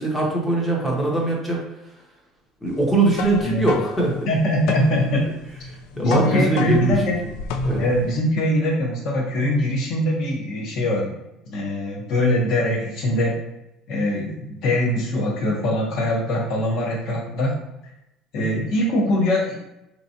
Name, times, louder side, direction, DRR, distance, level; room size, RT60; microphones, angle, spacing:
voice 1, 0.0-1.6 2.6-4.2 6.0-7.0 7.6-7.8, right 2 dB, 5° left, -2 dB, 0.7 m, -21 dB
sound 1, 2.7-8.2, left 3 dB, 80° left, 0.3 m, -31 dB
voice 2, 4.3-5.3 5.9-7.2 7.7-11.1 11.5-13.4 13.9-17.6 18.3-19.6, left 1 dB, 50° left, -2 dB, 0.9 m, -22 dB
3.5 x 2.9 x 2.8 m, 0.89 s
cardioid pair, 165°, 0 cm